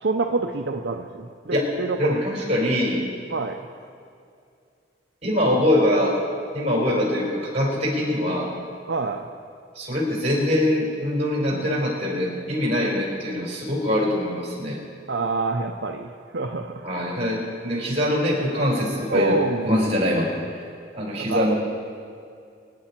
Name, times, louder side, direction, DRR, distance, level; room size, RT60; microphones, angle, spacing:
voice 1, 0.0-2.2 3.3-3.7 5.4-5.6 6.8-7.0 8.9-9.3 11.5-11.7 15.1-16.8 19.1-19.7 21.2-21.5, right 3 dB, 65° right, 3 dB, 0.7 m, -27 dB
voice 2, 2.0-3.0 5.2-6.2 6.5-8.5 9.7-14.8 16.8-19.3 19.6-20.6 20.9-21.5, left 1 dB, 35° right, -2 dB, 4.6 m, -23 dB
25.5 x 9.8 x 4.4 m, 2.4 s
head